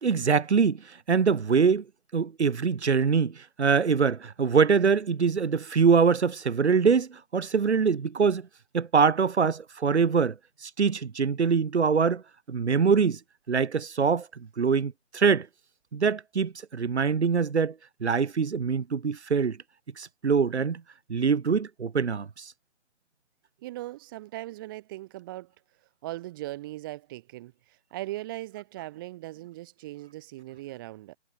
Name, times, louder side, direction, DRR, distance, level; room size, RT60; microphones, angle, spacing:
voice 1, 0.0-1.8 2.1-8.5 8.7-10.3 10.6-12.2 12.5-13.2 13.5-15.5 15.9-17.7 18.0-19.6 20.0-20.8 21.1-22.5, right 5 dB, 65° right, 2.6 m, -24 dB
voice 2, 23.6-25.5 26.0-31.1, right 17 dB, 20° right, 1.5 m, -39 dB
hypercardioid pair, 160°, 36 cm